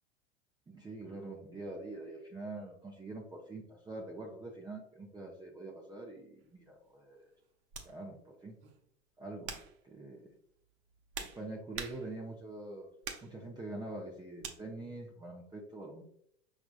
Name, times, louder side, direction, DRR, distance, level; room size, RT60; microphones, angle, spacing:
voice 1, 0.7-7.3 7.8-8.6 9.2-10.3 11.2-12.9 13.2-16.0, right 2 dB, 15° right, -2 dB, 0.7 m, -45 dB
sound 1, 6.4-6.6 7.7-7.9 8.6-8.9 9.4-9.8 10.7-12.4 13.0-13.4 14.4-14.6, right 6 dB, 55° right, 0.8 m, -44 dB
5.8 x 2.5 x 2.5 m, 0.71 s
figure-of-eight pair, 85°, 32 cm